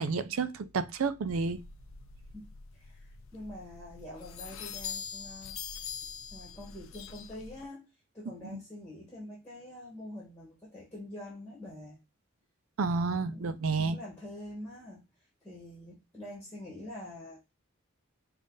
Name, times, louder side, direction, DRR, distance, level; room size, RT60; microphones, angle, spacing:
voice 1, 0.0-1.6 8.5-8.6 12.8-14.0, right 4 dB, 90° right, 0.5 m, -30 dB
sound 1, 1.3-7.6, left 7 dB, 80° left, 0.4 m, -44 dB
voice 2, 2.7-5.6 6.3-7.9 8.1-12.0 13.3-15.0 15.4-17.5, left 1 dB, 10° left, 1.5 m, -45 dB
5.3 x 2.5 x 3.9 m
head